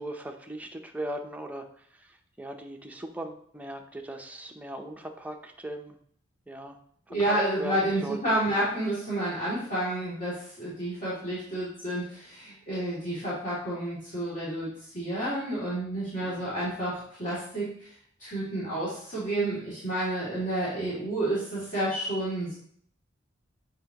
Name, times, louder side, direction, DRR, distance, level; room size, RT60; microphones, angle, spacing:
voice 1, 0.0-6.0 6.5-6.8 7.1-7.7 8.0-8.2 16.2-16.6, right 1 dB, 10° right, 3 dB, 0.6 m, -39 dB
voice 2, 7.1-17.9 18.2-22.6, right 1 dB, 40° left, -10 dB, 2.5 m, -30 dB
7.7 x 5.2 x 2.9 m, 0.63 s
head